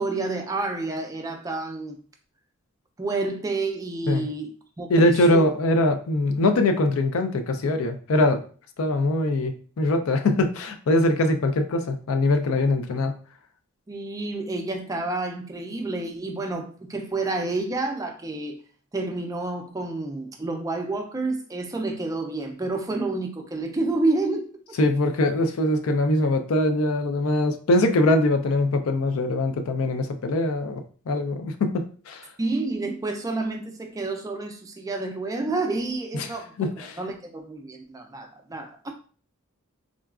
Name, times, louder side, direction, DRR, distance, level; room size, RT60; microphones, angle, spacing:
voice 1, 0.0-2.0 3.0-4.5 4.8-5.4 13.9-18.6 18.9-24.5 32.4-38.9, right 2 dB, 15° right, 3 dB, 0.3 m, -29 dB
voice 2, 4.9-8.4 8.8-13.1 24.8-32.3 36.6-37.0, left 1 dB, 75° left, 7 dB, 0.4 m, -22 dB
3.7 x 2.3 x 2.3 m, 0.41 s
head